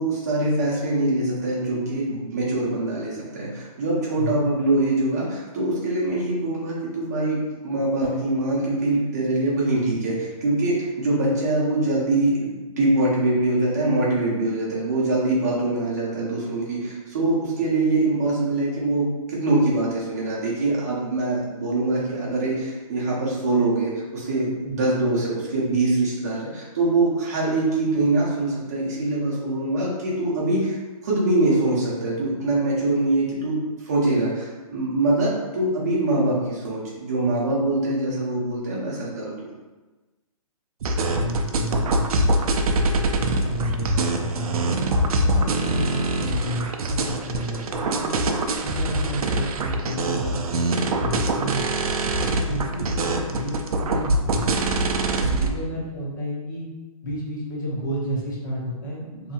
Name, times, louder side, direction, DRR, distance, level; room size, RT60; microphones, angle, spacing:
voice 1, 0.0-7.4 7.6-33.6 33.8-39.3 55.1-55.5, right 2 dB, 25° right, -6 dB, 0.7 m, -23 dB
sound 1, 40.8-55.5, right 2 dB, 80° right, 0.4 m, -24 dB
voice 2, 41.1-42.4 42.9-44.8 45.3-48.1 48.6-51.6 52.2-54.5 55.0-56.7 57.0-59.3, right 1 dB, 35° left, -6 dB, 0.6 m, -31 dB
2.7 x 2.6 x 2.4 m, 1.2 s
hypercardioid pair, 175°, 19 cm